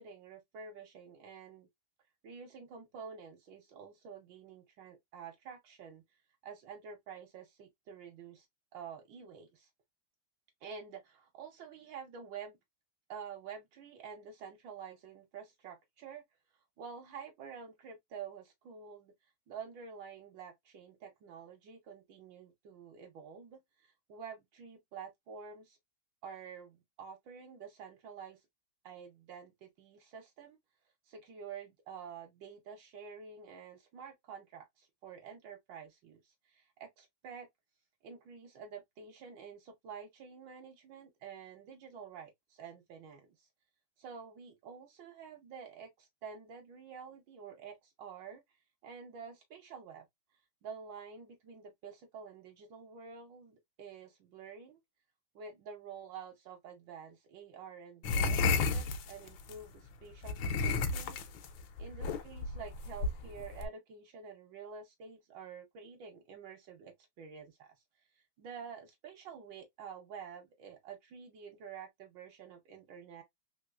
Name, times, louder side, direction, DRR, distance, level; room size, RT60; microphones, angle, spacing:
voice 1, 0.0-1.7 2.2-6.0 6.4-8.5 8.7-9.7 10.6-12.6 13.1-16.2 16.8-19.1 19.5-25.8 26.2-28.4 28.8-30.6 31.1-37.5 38.0-43.5 44.0-48.4 48.8-50.0 50.6-54.8 55.3-61.3 61.8-67.7 68.1-73.2, right 6 dB, 70° right, 1.4 m, -49 dB
sound 1, 58.0-59.6 60.2-63.7, left 4 dB, 85° left, 1.4 m, -32 dB
3.5 x 3.0 x 2.4 m
omnidirectional pair, 2.2 m